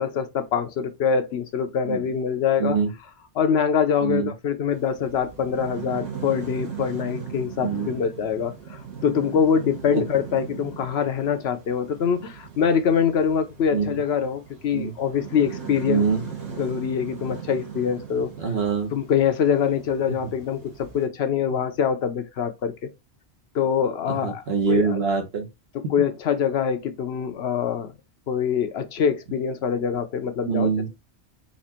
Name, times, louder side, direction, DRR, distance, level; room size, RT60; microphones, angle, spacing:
voice 1, 0.0-2.8 3.3-16.1 16.6-18.3 18.9-22.9 23.5-24.4 24.7-25.0 25.7-27.9 28.3-30.7, left 7 dB, 70° left, 0.9 m, -24 dB
voice 2, 4.0-4.3 7.6-7.9 9.9-10.0 13.7-14.0 14.7-14.9 15.9-16.2 18.4-18.9 24.2-25.5 30.5-30.9, right 5 dB, 65° right, 1.3 m, -24 dB
sound 1, 4.7-21.1, right 8 dB, 90° right, 1.6 m, -39 dB
4.2 x 2.5 x 4.3 m
omnidirectional pair, 1.1 m